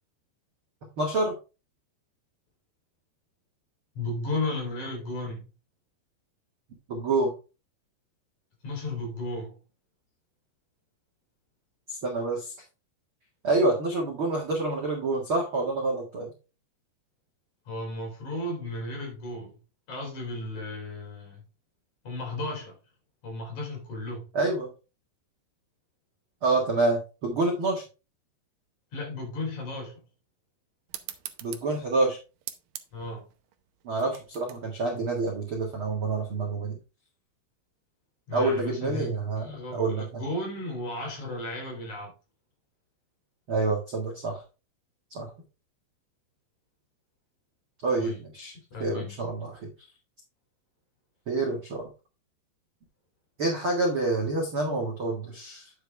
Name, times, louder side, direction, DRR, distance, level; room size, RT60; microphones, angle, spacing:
voice 1, 1.0-1.4 6.9-7.3 11.9-12.5 13.4-16.3 24.3-24.7 26.4-27.8 31.4-32.2 33.8-36.8 38.3-40.2 43.5-44.4 45.1-45.3 47.8-48.5 48.8-49.7 51.3-51.9 53.4-55.7, right 2 dB, 45° right, -1 dB, 1.8 m, -27 dB
voice 2, 3.9-5.4 8.6-9.6 17.7-19.6 19.9-21.4 22.0-22.8 23.2-24.3 28.9-30.0 32.9-33.2 38.3-39.2 39.4-42.1 48.0-48.2 48.7-49.1, left 2 dB, 45° left, 2 dB, 4.4 m, -34 dB
sound 1, 30.9-36.0, right 12 dB, 85° right, 1.9 m, -44 dB
9.6 x 7.0 x 3.4 m, 0.31 s
omnidirectional pair, 5.0 m